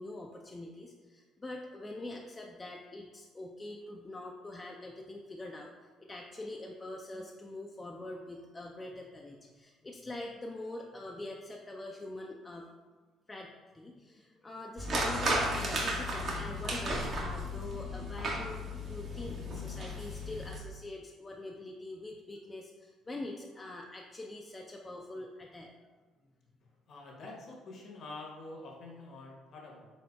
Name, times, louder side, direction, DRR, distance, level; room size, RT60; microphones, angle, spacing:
voice 1, 0.0-5.7 6.0-12.7 13.3-25.7, left 2 dB, 25° left, 0 dB, 0.4 m, -44 dB
sound 1, 14.8-20.6, equal, 55° right, 0.9 m, -34 dB
voice 2, 26.9-29.9, left 2 dB, 55° left, -1 dB, 0.9 m, -46 dB
4.1 x 3.6 x 2.2 m, 1.4 s
hypercardioid pair, 55°, 0 cm